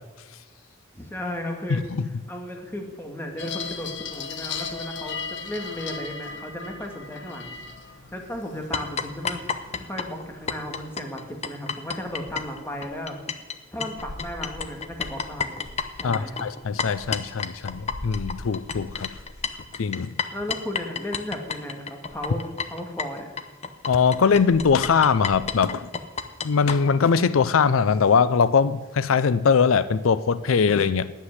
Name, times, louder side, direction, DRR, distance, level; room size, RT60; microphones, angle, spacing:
voice 1, 0.9-7.6 8.1-9.4 9.8-13.2 13.7-15.6 15.9-16.5 20.3-23.3, left 1 dB, 10° left, 2.1 m, -35 dB
voice 2, 1.7-2.1 16.0-19.1 19.8-20.1 23.9-25.9 26.4-31.1, left 6 dB, 90° left, 0.5 m, -21 dB
sound 1, 3.4-10.8, left 5 dB, 60° left, 1.3 m, -37 dB
sound 2, 8.7-13.5 13.8-26.8, left 5 dB, 30° left, 0.8 m, -31 dB
10.0 x 8.1 x 9.6 m
head